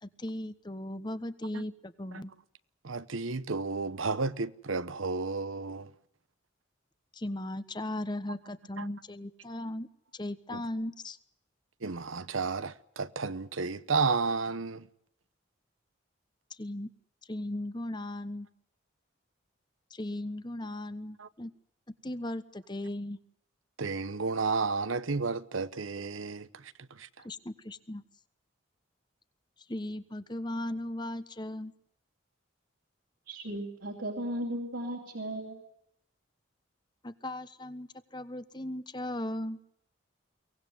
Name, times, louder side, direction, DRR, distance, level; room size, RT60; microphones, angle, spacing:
voice 1, 0.0-2.3 7.1-9.9 10.1-11.2 16.5-16.9 17.3-18.5 19.9-21.5 22.0-23.2 27.2-28.0 29.7-31.7 37.0-39.6, left 1 dB, 20° left, 1.1 m, -37 dB
voice 2, 2.8-5.9 8.8-8.9 10.5-10.6 11.8-14.9 21.2-21.3 23.8-27.1, right 4 dB, 85° right, 1.0 m, -32 dB
voice 3, 33.3-35.6, right 1 dB, 70° right, 3.1 m, -36 dB
23.5 x 18.5 x 9.4 m
head